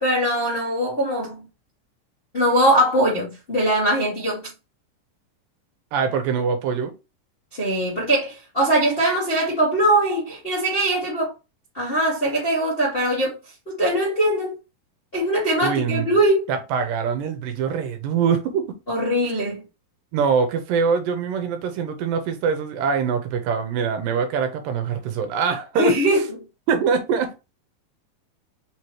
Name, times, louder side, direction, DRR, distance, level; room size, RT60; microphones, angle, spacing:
voice 1, 0.0-1.4 2.3-4.4 7.5-11.3 11.7-13.4 13.7-14.5 15.1-16.5 18.9-19.6 25.8-26.4, right 1 dB, 35° left, 0.9 m, -21 dB
voice 2, 5.9-6.9 15.6-16.2 16.5-18.7 20.1-26.0 26.7-27.3, right 6 dB, 85° right, 2.4 m, -23 dB
5.4 x 3.0 x 3.1 m
omnidirectional pair, 4.0 m